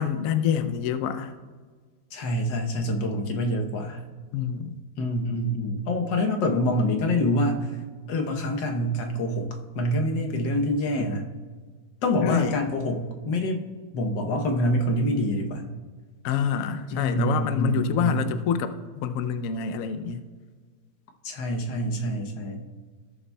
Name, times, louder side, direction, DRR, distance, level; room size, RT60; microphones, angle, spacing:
voice 1, 0.0-1.3 4.3-4.8 12.2-12.6 16.2-20.2, left 8 dB, 70° left, 9 dB, 0.8 m, -27 dB
voice 2, 2.1-4.0 5.0-7.7 8.1-11.2 12.0-13.6 13.9-15.7 16.9-18.3 21.2-22.6, left 1 dB, 90° left, 3 dB, 1.6 m, -26 dB
15.5 x 6.9 x 2.2 m, 1.5 s
omnidirectional pair, 1.9 m